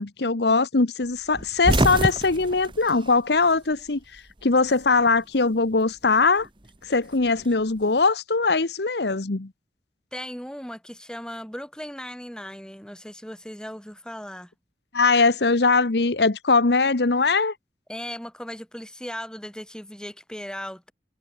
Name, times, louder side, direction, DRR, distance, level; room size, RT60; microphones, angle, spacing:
voice 1, 0.0-6.5 6.8-9.5 14.9-17.5, left 3 dB, 70° left, 1.1 m, -21 dB
sound 1, 1.3-3.9 4.2-5.2 6.4-7.9, right 1 dB, 25° right, 2.0 m, -27 dB
voice 2, 10.1-14.5 17.9-20.9, equal, 5° left, 6.7 m, -37 dB
head